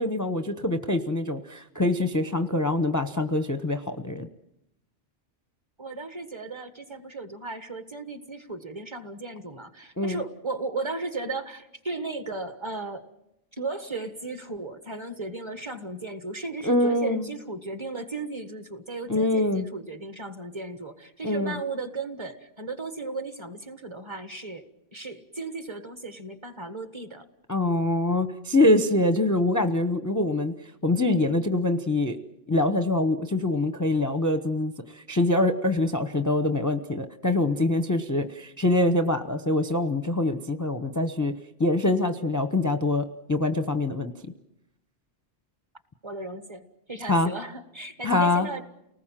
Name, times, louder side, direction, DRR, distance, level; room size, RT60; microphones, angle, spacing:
voice 1, 0.0-4.3 10.0-10.2 16.6-17.3 19.1-19.7 21.2-21.6 27.5-30.5 30.8-32.2 32.5-41.3 41.6-44.1 47.1-47.3 48.0-48.5, left 2 dB, 15° left, 8 dB, 0.8 m, -24 dB
voice 2, 5.8-13.0 13.5-27.2 46.0-48.6, right 3 dB, 25° right, 8 dB, 1.5 m, -35 dB
30.0 x 19.5 x 7.5 m, 0.87 s
omnidirectional pair, 1.2 m